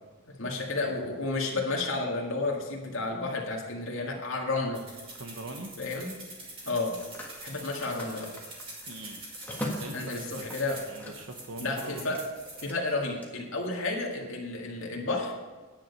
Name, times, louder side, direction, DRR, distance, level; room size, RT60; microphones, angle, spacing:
voice 1, 0.4-4.8 5.8-6.1 6.7-6.9 7.4-8.3 9.9-10.8 11.6-12.2 12.6-15.3, left 3 dB, 75° left, -2 dB, 1.9 m, -31 dB
sound 1, 4.7-12.6, right 2 dB, 25° right, 2.6 m, -45 dB
voice 2, 5.0-5.7 8.9-9.2 9.8-10.4 10.9-12.2, right 2 dB, 75° right, 3 dB, 1.0 m, -42 dB
Telephone, 6.6-11.4 11.7-13.3, equal, 10° left, 1.6 m, -42 dB
10.0 x 9.0 x 5.5 m, 1.3 s
head